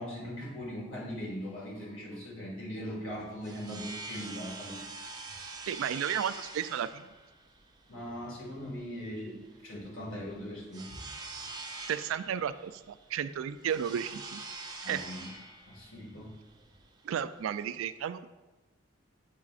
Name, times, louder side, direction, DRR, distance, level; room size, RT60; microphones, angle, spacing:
voice 1, 0.0-4.8 7.9-10.9 11.3-11.6 14.8-15.3 15.7-16.3, equal, 80° left, -3 dB, 1.9 m, -40 dB
sound 1, 3.1-17.6, right 3 dB, 20° right, 0.5 m, -45 dB
voice 2, 5.7-7.1 11.9-14.4 14.9-15.0 17.0-18.3, right 9 dB, 85° right, 13 dB, 0.3 m, -33 dB
8.2 x 4.8 x 2.5 m, 1.1 s
head